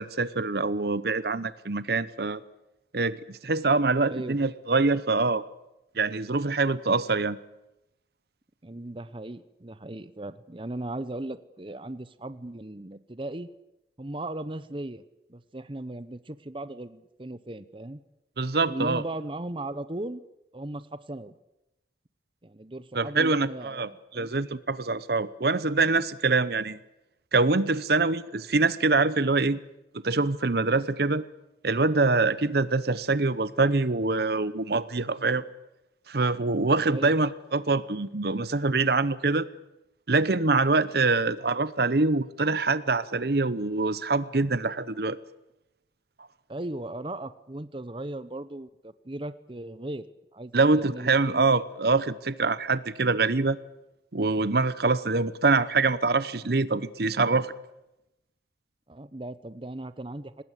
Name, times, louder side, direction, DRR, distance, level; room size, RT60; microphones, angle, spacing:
voice 1, 0.0-2.4 2.9-5.4 6.0-7.4 18.4-19.0 22.9-26.8 27.3-29.6 30.0-31.2 31.6-35.4 36.1-39.5 40.1-45.2 50.5-53.6 54.1-57.5, right 3 dB, 60° right, 16 dB, 0.9 m, -24 dB
voice 2, 4.1-4.4 8.6-13.5 14.0-15.0 15.3-18.0 18.7-20.2 20.5-21.4 22.4-24.3 36.9-37.1 46.5-50.1 50.3-51.5 58.9-60.4, right 1 dB, 30° right, 14 dB, 0.9 m, -37 dB
26.5 x 19.5 x 8.3 m, 0.91 s
head